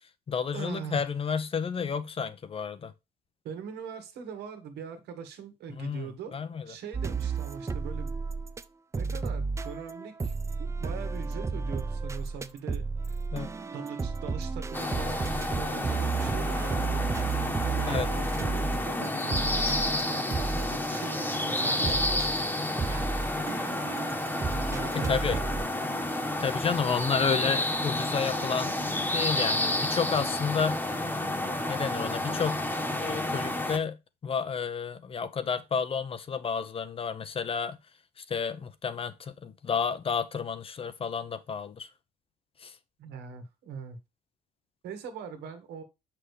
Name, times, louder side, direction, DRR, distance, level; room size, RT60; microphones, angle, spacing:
voice 1, 0.0-2.9 5.7-6.7 13.3-13.5 17.9-18.1 24.9-25.4 26.4-28.8 29.1-30.8 31.7-32.6 33.0-34.0 34.2-37.8 38.2-41.9 42.6-42.8, left 6 dB, 35° left, 0.8 m, -31 dB
voice 2, 0.5-1.0 3.4-6.4 6.7-8.1 8.9-10.3 10.6-13.2 13.7-17.1 17.6-22.2 24.7-25.5 43.0-44.0 44.8-45.8, right 7 dB, 80° right, 1.8 m, -41 dB
sound 1, 6.9-8.6 8.9-25.7, right 4 dB, 15° right, 0.4 m, -33 dB
sound 2, 14.7-33.8, left 1 dB, 10° left, 1.3 m, -30 dB
6.7 x 6.0 x 3.2 m
cardioid pair, 110°, 17 cm